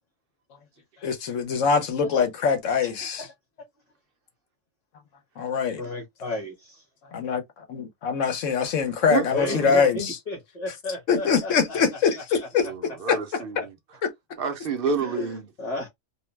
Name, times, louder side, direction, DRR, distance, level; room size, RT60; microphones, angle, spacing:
voice 1, 1.0-3.3 5.4-5.8 7.1-7.4 7.7-10.2 11.1-13.2 14.0-14.1, left 6 dB, 65° left, 1.1 m, -23 dB
voice 2, 2.8-3.3 5.8-6.8 9.3-11.9 15.0-15.9, left 2 dB, 30° left, 1.1 m, -33 dB
voice 3, 9.1-9.7 12.6-13.7 14.4-15.5, right 5 dB, 55° right, 0.6 m, -29 dB
2.6 x 2.1 x 3.1 m
omnidirectional pair, 1.5 m